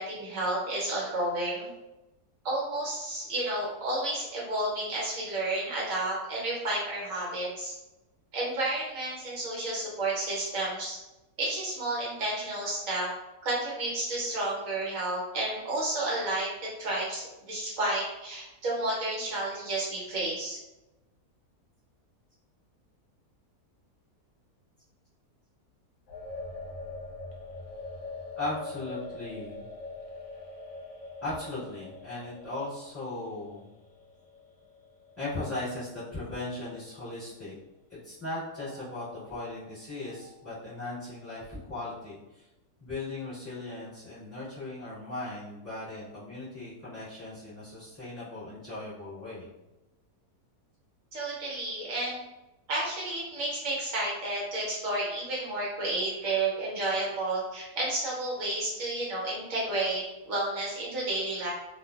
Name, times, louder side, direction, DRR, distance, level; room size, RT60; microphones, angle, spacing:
voice 1, 0.0-1.7 2.4-7.7 8.3-11.0 11.4-13.1 13.4-20.6 51.1-52.2 52.7-61.5, right 2 dB, 60° right, -4 dB, 1.2 m, -31 dB
sound 1, 26.1-36.7 37.0-37.1 38.6-40.5, left 3 dB, 70° left, 0.9 m, -44 dB
voice 2, 28.4-29.7 31.2-33.7 35.2-37.5 38.0-42.5 42.8-49.5, left 2 dB, 10° left, -13 dB, 1.3 m, -38 dB
2.4 x 2.4 x 2.3 m, 1.0 s
omnidirectional pair, 1.7 m